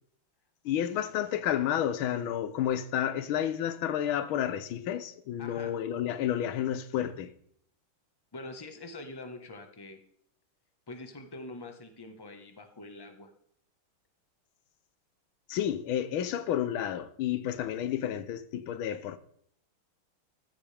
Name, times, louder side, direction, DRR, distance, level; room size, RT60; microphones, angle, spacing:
voice 1, 0.7-7.3 15.5-19.2, left 10 dB, 80° left, 1.7 m, -31 dB
voice 2, 5.4-5.7 8.3-10.0 10.9-13.3, left 2 dB, 15° left, 1.1 m, -44 dB
14.5 x 14.5 x 3.5 m
omnidirectional pair, 2.3 m